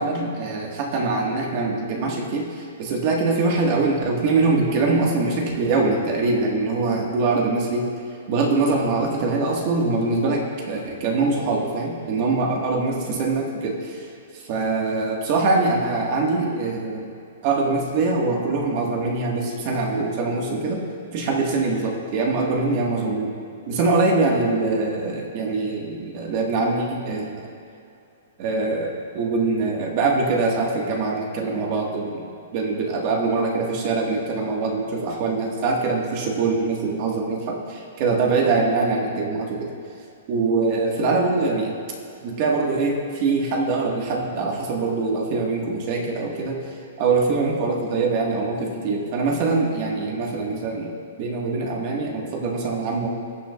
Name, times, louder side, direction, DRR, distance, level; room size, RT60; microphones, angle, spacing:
voice 1, 0.0-7.9 8.3-14.1 14.5-17.1 17.4-20.8 21.1-23.3 23.7-27.5 28.4-32.3 32.5-39.7 40.3-41.7 42.2-46.6 47.0-53.1, right 3 dB, 40° right, -1 dB, 1.6 m, -23 dB
19.0 x 6.8 x 2.4 m, 2.4 s
hypercardioid pair, 150°, 0 cm